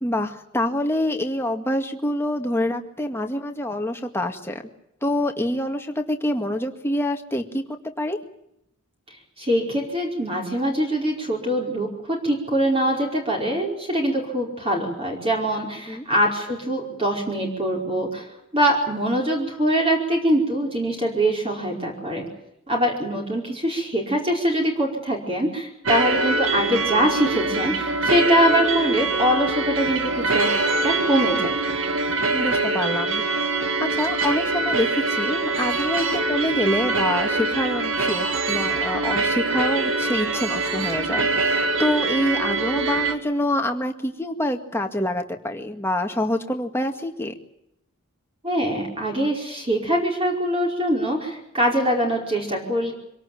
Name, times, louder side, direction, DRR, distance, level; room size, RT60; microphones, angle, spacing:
voice 1, 0.0-4.6 5.0-8.2 15.9-16.1 32.3-47.3, left 1 dB, 10° left, 4 dB, 2.0 m, -26 dB
voice 2, 9.4-18.2 18.5-22.2 22.7-30.5 30.8-31.5 48.4-52.9, equal, 25° right, 0 dB, 4.9 m, -23 dB
sound 1, 25.9-43.2, right 3 dB, 70° right, 2.3 m, -24 dB
25.5 x 18.0 x 9.2 m, 0.79 s
head